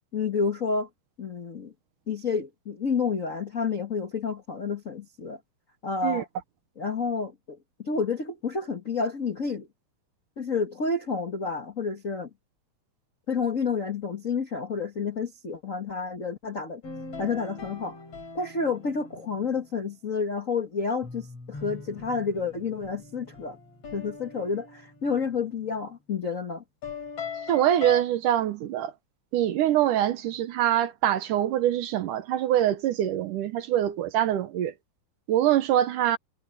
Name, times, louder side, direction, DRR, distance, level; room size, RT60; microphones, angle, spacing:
voice 1, 0.1-0.9 1.2-1.7 2.1-5.4 5.8-6.3 6.8-9.7 10.4-12.3 13.3-16.8 17.2-18.0 18.3-23.6 23.9-26.6, left 5 dB, 70° left, 0.7 m, -30 dB
sound 1, 16.8-19.7 21.0-25.6 26.8-28.0, left 5 dB, 40° left, 6.1 m, -41 dB
voice 2, 27.5-28.9 29.3-34.7 35.3-36.2, right 12 dB, 70° right, 2.3 m, -24 dB
omnidirectional pair, 4.2 m